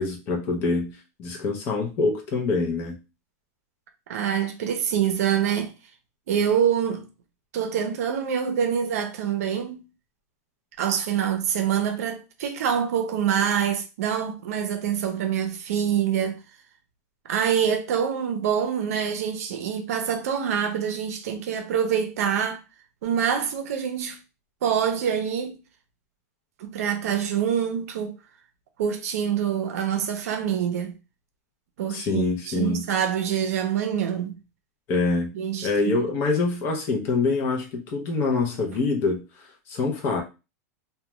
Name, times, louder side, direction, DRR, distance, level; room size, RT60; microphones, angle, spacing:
voice 1, 0.0-3.0 31.9-32.9 34.9-35.3 35.6-39.2 39.7-40.2, left 3 dB, 25° left, 0.6 m, -25 dB
voice 2, 4.1-5.7 6.3-7.1 7.5-9.8 10.8-16.4 17.3-22.6 23.0-24.2 24.6-25.6 26.6-28.1 28.8-30.9 31.8-34.3 35.3-36.0, right 8 dB, 65° right, 0.6 m, -25 dB
2.2 x 2.2 x 2.9 m
supercardioid pair, 175°, 9 cm